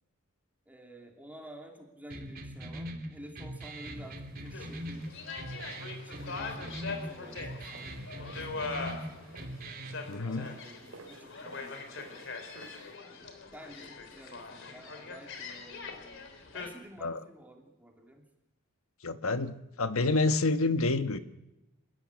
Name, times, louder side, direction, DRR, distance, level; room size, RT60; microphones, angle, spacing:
voice 1, 0.7-5.1 6.0-7.9 8.2-9.7 10.2-12.4 13.1-18.2, right 1 dB, 10° right, 1 dB, 2.9 m, -51 dB
sound 1, 2.1-10.1, right 1 dB, 45° right, 2.8 m, -42 dB
sound 2, 3.8-13.0, right 2 dB, 85° right, 4.3 m, -55 dB
sound 3, 4.5-16.7, left 4 dB, 60° left, 3.5 m, -42 dB
voice 2, 10.1-10.5 17.0-17.2 19.0-21.2, left 3 dB, 80° left, 10 dB, 1.3 m, -28 dB
29.5 x 13.0 x 9.6 m, 1.0 s
head